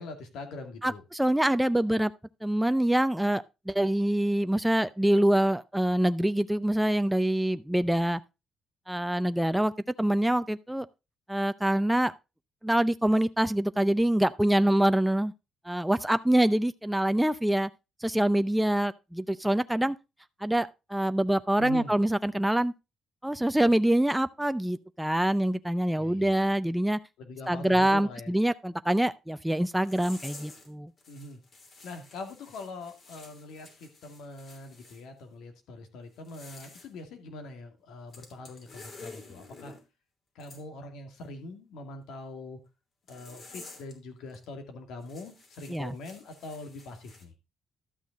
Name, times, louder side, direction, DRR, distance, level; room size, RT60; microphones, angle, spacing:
voice 1, 0.0-1.0 21.6-21.9 26.0-26.5 27.2-28.3 31.1-31.4 31.8-39.7 40.3-42.6 43.1-47.3, left 2 dB, 85° left, 2.3 m, -43 dB
voice 2, 0.8-2.1 2.4-8.2 8.9-9.7 10.0-10.9 11.3-12.1 12.6-15.3 15.7-17.7 18.0-20.0 20.4-22.7 23.2-27.0 27.5-30.9 45.7-45.9, right 1 dB, 5° right, 0.5 m, -25 dB
sound 1, 29.8-30.7 31.0-35.0 36.1-36.9 38.1-39.8 40.4-40.6 43.1-43.9 44.3-44.4 45.0-47.2, left 3 dB, 50° left, 3.0 m, -50 dB
12.5 x 6.2 x 4.0 m
cardioid pair, 90°, 0 cm